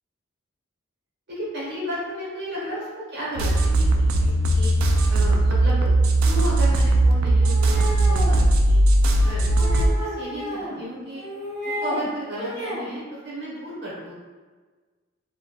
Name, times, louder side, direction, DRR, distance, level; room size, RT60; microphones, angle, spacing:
voice 1, 1.3-4.7 5.1-8.8 9.2-11.2 11.6-14.1, equal, 55° right, -7 dB, 1.0 m, -33 dB
sound 1, 3.4-9.9, right 1 dB, 90° right, 0.3 m, -19 dB
sound 2, 7.4-8.4 9.4-10.8 11.1-12.0 12.3-12.9, equal, 30° left, 0.8 m, -32 dB
3.1 x 2.2 x 2.3 m, 1.4 s
head